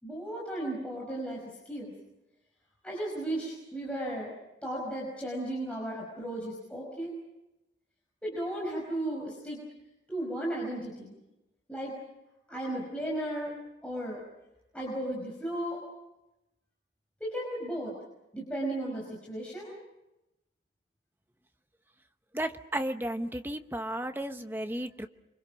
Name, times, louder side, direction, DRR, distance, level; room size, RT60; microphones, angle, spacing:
voice 1, 0.0-1.4 1.7-1.9 2.8-4.4 4.6-7.1 8.2-9.6 10.1-11.2 11.7-11.9 12.5-13.6 13.8-14.2 14.7-15.8 17.2-17.9 18.3-19.7, right 1 dB, 5° left, -4 dB, 5.3 m, -35 dB
voice 2, 22.3-25.1, right 1 dB, 10° right, 7 dB, 0.9 m, -33 dB
29.0 x 25.0 x 6.3 m, 0.96 s
head